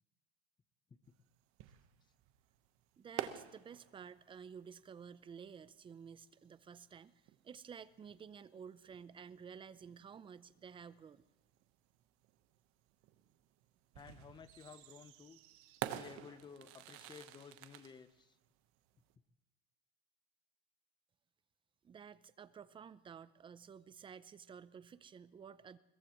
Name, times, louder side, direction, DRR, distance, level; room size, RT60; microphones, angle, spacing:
sound 1, 1.1-19.1, right 13 dB, 45° right, 1.2 m, -50 dB
voice 1, 3.0-11.2 21.8-25.8, right 7 dB, 15° right, 16 dB, 0.6 m, -53 dB
voice 2, 13.9-15.4 15.8-18.4, left 6 dB, 15° left, 13 dB, 0.8 m, -55 dB
22.0 x 21.5 x 3.1 m, 0.99 s
supercardioid pair, 135°, 30 cm